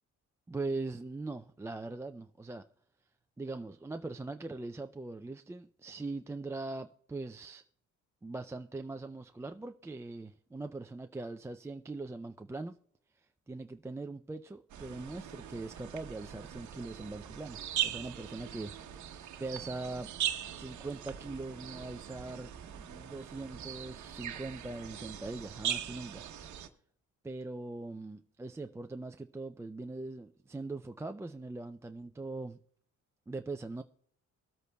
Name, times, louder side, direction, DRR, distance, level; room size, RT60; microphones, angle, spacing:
voice 1, 0.5-2.7 3.4-7.6 8.2-12.8 13.5-20.1 20.6-26.2 27.2-32.6 33.3-33.8, right 3 dB, 10° right, 0.3 m, -41 dB
sound 1, 14.7-26.7, right 10 dB, 70° right, 1.0 m, -40 dB
23.5 x 8.2 x 2.3 m
cardioid pair, 90°, 30 cm